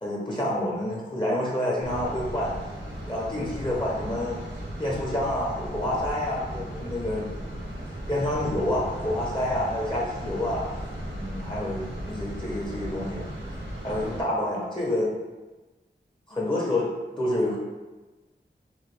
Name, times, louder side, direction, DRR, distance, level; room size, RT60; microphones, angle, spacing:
voice 1, 0.0-2.6 3.0-4.4 4.8-7.5 8.1-10.7 11.1-13.2 13.8-15.2 16.3-17.6, left 1 dB, 25° left, -4 dB, 0.8 m, -28 dB
sound 1, 1.8-14.2, equal, 80° right, 0.9 m, -36 dB
3.0 x 2.2 x 3.3 m, 1.2 s
cardioid pair, 40°, 19 cm